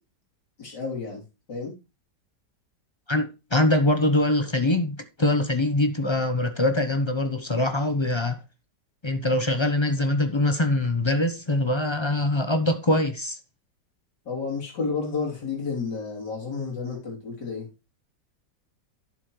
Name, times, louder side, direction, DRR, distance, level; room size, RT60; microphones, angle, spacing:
voice 1, 0.6-1.2 1.5-1.7 14.3-17.7, left 4 dB, 70° left, 4.0 m, -31 dB
voice 2, 3.1-8.4 9.0-13.4, left 1 dB, 25° left, 0.6 m, -23 dB
11.5 x 7.2 x 3.1 m
omnidirectional pair, 1.9 m